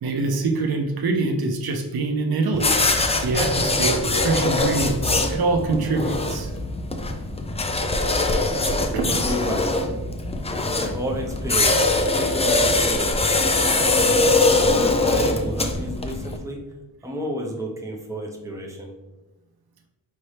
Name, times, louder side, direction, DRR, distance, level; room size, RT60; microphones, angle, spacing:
voice 1, 0.0-2.8 3.2-6.5 8.9-9.2, right 3 dB, 70° right, 4 dB, 0.7 m, -24 dB
sound 1, 2.5-16.4, left 2 dB, 15° left, 0.4 m, -22 dB
voice 2, 8.5-9.7 10.6-13.4 14.0-16.6 17.0-18.9, right 1 dB, 10° right, 0 dB, 0.7 m, -32 dB
5.2 x 3.0 x 3.2 m, 1.1 s
wide cardioid pair, 105°, 38 cm